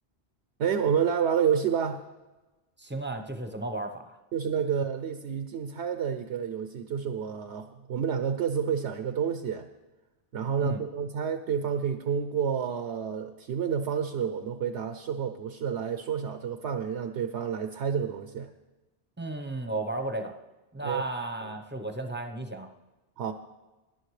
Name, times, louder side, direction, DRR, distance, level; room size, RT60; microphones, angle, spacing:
voice 1, 0.6-2.0 4.3-9.7 10.3-18.5 20.8-21.0 23.2-23.3, right 7 dB, 80° right, 8 dB, 1.0 m, -29 dB
voice 2, 2.8-4.2 10.6-10.8 19.2-20.3 20.7-22.7, right 2 dB, 10° right, 6 dB, 0.8 m, -34 dB
18.0 x 11.0 x 3.2 m, 1.1 s
omnidirectional pair, 1.1 m